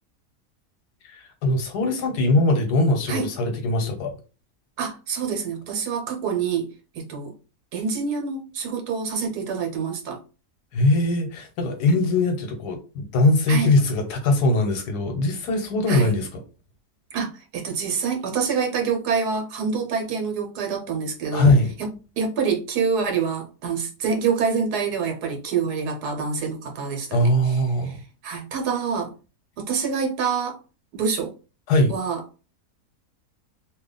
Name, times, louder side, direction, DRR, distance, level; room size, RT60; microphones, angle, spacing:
voice 1, 1.0-4.2 10.7-16.4 21.3-21.7 27.1-28.0 31.7-31.9, left 2 dB, 80° left, 1.4 m, -21 dB
voice 2, 4.8-6.7 6.9-7.3 7.7-10.2 13.5-13.7 15.9-16.1 17.1-21.5 21.8-27.6 27.8-27.9 28.2-29.1 29.6-30.6 30.9-31.3 31.9-32.2, right 5 dB, 75° right, 1.4 m, -26 dB
3.0 x 2.3 x 3.8 m
omnidirectional pair, 1.7 m